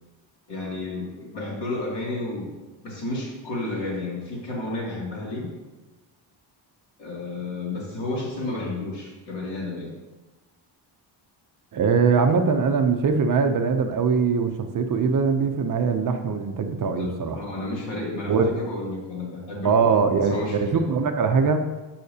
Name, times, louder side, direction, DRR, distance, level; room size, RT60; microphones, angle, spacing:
voice 1, 0.5-2.5 2.8-5.5 7.0-10.0 16.8-17.1 17.3-19.9 20.3-20.8, left 2 dB, 60° left, -3 dB, 2.6 m, -31 dB
voice 2, 11.7-17.4 18.3-18.6 19.6-21.7, right 5 dB, 45° right, 6 dB, 0.6 m, -22 dB
13.0 x 5.7 x 2.8 m, 1.2 s
wide cardioid pair, 165°, 46 cm